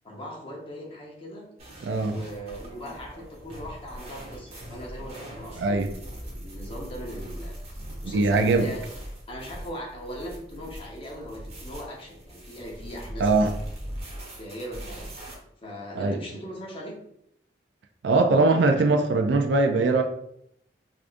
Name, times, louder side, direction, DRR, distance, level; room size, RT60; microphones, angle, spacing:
voice 1, 0.0-1.5 2.0-7.6 8.0-8.8 9.3-13.5 14.4-15.1 15.6-17.0, equal, 30° left, -2 dB, 0.9 m, -39 dB
sound 1, 1.6-15.3, equal, 35° right, 1.1 m, -40 dB
voice 2, 1.8-2.2 5.6-5.9 8.1-8.7 13.2-13.5 16.0-16.2 18.0-20.0, right 3 dB, 80° right, 5 dB, 0.4 m, -21 dB
4.8 x 2.5 x 2.5 m, 0.73 s
head